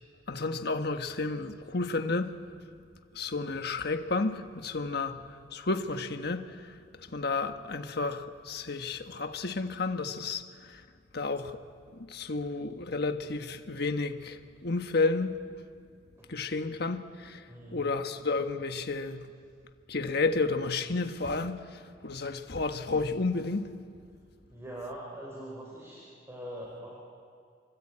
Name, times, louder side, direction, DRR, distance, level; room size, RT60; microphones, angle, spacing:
voice 1, 0.3-2.4 3.1-5.2 5.5-6.7 7.1-10.8 11.1-11.6 11.9-15.4 16.3-17.5 17.7-19.3 19.9-23.7, left 3 dB, 60° left, 1.4 m, -31 dB
voice 2, 17.5-17.9 24.5-26.9, right 1 dB, 15° right, 5.3 m, -42 dB
27.5 x 24.0 x 8.8 m
head